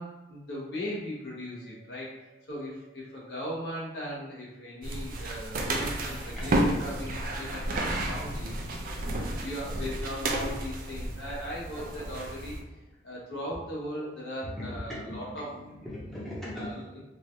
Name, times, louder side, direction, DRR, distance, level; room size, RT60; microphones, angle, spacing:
voice 1, 0.0-2.2 2.5-8.8 9.1-12.5 13.0-15.5 16.5-17.0, equal, 65° left, -6 dB, 1.1 m, -38 dB
voice 2, 1.6-2.4 2.8-3.3 5.6-5.7 6.4-6.5 8.9-9.1 11.2-11.4 13.0-13.4 14.6-17.0, left 1 dB, ahead, -9 dB, 0.7 m, -42 dB
sound 1, 4.8-12.6, right 1 dB, 50° right, 0.4 m, -32 dB
3.1 x 2.4 x 2.7 m, 1.0 s
head